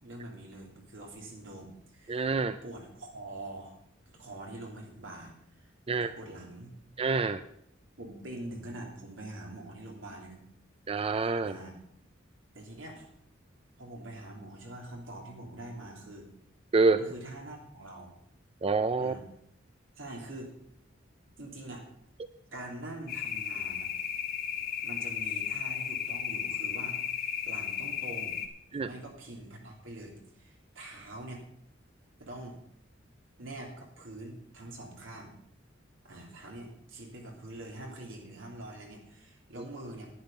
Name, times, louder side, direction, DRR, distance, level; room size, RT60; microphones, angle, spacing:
voice 1, 0.0-2.3 2.6-3.7 4.1-6.7 8.0-10.4 11.4-11.7 12.5-13.1 13.8-16.3 16.9-18.1 19.0-19.2 20.0-20.5 21.4-21.9 22.5-23.9 24.8-28.4 28.7-31.4 32.2-32.6 33.4-35.3 36.0-40.1, right 1 dB, 80° right, 0 dB, 3.2 m, -44 dB
voice 2, 2.1-2.6 5.9-6.1 7.0-7.4 10.9-11.5 16.7-17.0 18.6-19.1 28.7-28.9, right 4 dB, 30° right, 11 dB, 0.4 m, -26 dB
sound 1, 23.1-28.5, left 8 dB, 50° left, 1.4 m, -34 dB
10.5 x 9.8 x 5.5 m, 0.72 s
head